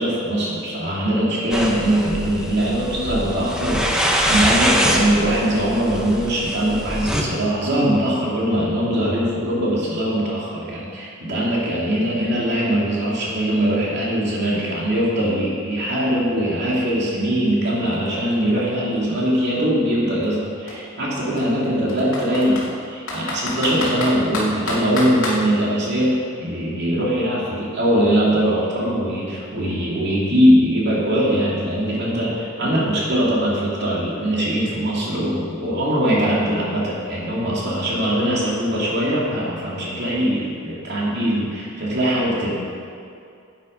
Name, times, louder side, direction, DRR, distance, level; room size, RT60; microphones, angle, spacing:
voice 1, 0.0-3.9 4.3-42.6, equal, 55° right, -5 dB, 2.7 m, -21 dB
sound 1, 1.5-7.2, equal, 5° right, 1.0 m, -23 dB
Computer keyboard, 17.1-17.2 17.5-19.4 20.2-20.4 20.7-20.8 21.4-22.7 23.1-25.4, left 2 dB, 75° left, 2.4 m, -29 dB
10.0 x 8.7 x 5.3 m, 2.5 s
head